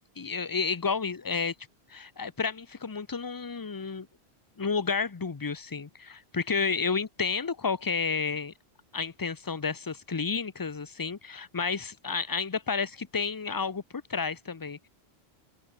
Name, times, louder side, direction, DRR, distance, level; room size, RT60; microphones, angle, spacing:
voice 1, 0.2-1.5 1.9-4.1 4.6-8.5 8.9-14.9, left 5 dB, 25° left, 0.5 m, -31 dB
open air
omnidirectional pair, 1.1 m